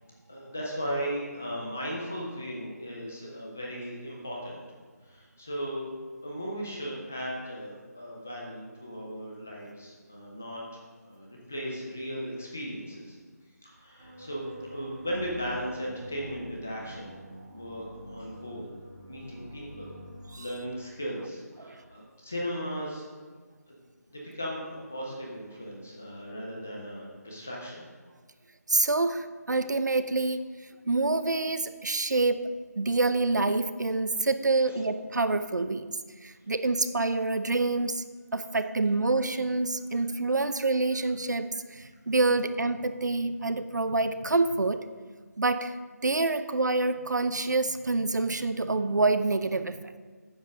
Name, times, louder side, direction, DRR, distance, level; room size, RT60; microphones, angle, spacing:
voice 1, 0.3-4.6 5.1-5.8 6.2-10.6 11.0-13.2 13.6-17.2 17.5-18.7 19.1-19.9 20.4-23.2 23.7-23.8 24.1-27.8 34.7-34.8, equal, 5° left, -3 dB, 0.4 m, -37 dB
sound 1, 14.0-20.4, equal, 25° right, 2.9 m, -47 dB
voice 2, 28.7-30.5 30.8-32.5 32.8-35.9 36.2-38.0 38.3-44.8 45.4-45.8 46.0-50.0, right 3 dB, 85° right, 11 dB, 0.7 m, -27 dB
9.5 x 7.3 x 5.0 m, 1.5 s
figure-of-eight pair, 175°, 9 cm